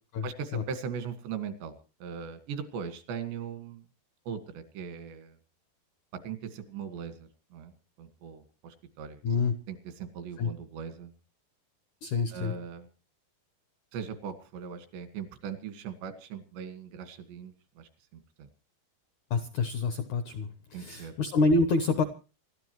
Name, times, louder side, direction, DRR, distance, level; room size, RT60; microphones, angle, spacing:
voice 1, 0.2-3.8 4.3-5.4 6.2-7.7 8.0-9.2 9.7-11.1 12.3-12.9 13.9-18.5 20.7-21.1, right 7 dB, 85° right, 9 dB, 4.0 m, -40 dB
voice 2, 9.2-9.5 10.4-10.5 12.0-12.5 19.3-22.0, left 3 dB, 75° left, 9 dB, 1.7 m, -27 dB
27.5 x 13.0 x 3.1 m, 0.34 s
omnidirectional pair, 4.9 m